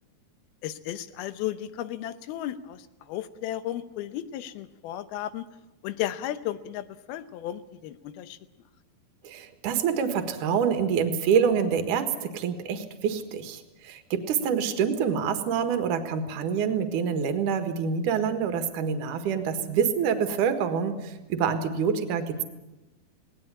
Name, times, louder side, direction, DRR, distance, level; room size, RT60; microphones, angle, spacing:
voice 1, 0.6-5.5 5.8-8.4, left 12 dB, 80° left, 13 dB, 2.7 m, -34 dB
voice 2, 9.2-22.4, right 7 dB, 60° right, 8 dB, 2.9 m, -26 dB
19.0 x 18.5 x 9.9 m, 1.0 s
omnidirectional pair, 4.5 m